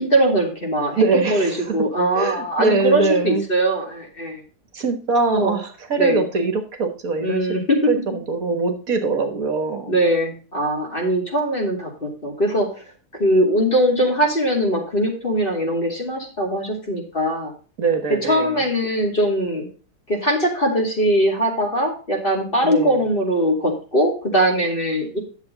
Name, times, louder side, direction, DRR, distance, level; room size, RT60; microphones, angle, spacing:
voice 1, 0.0-1.0 1.3-4.4 5.3-5.6 6.0-6.3 7.2-7.8 9.9-12.8 13.2-17.5 18.2-19.7 20.1-25.2, right 1 dB, 35° left, 0 dB, 2.9 m, -21 dB
voice 2, 1.0-1.8 2.1-3.5 4.7-7.5 7.9-10.0 17.8-18.6 22.6-23.0, right 4 dB, 60° right, 6 dB, 1.8 m, -22 dB
10.5 x 7.1 x 4.0 m, 0.37 s
omnidirectional pair, 1.7 m